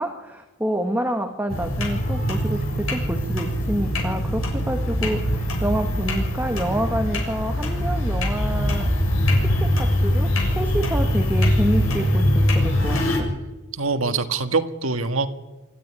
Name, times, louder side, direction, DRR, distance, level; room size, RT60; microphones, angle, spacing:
voice 1, 0.0-8.9 9.4-13.3, right 1 dB, 10° right, 5 dB, 1.5 m, -28 dB
sound 1, 1.5-13.2, equal, 85° left, 7.1 m, -22 dB
voice 2, 13.7-15.3, right 4 dB, 80° right, 8 dB, 1.6 m, -24 dB
24.5 x 14.0 x 10.0 m, 1.1 s
head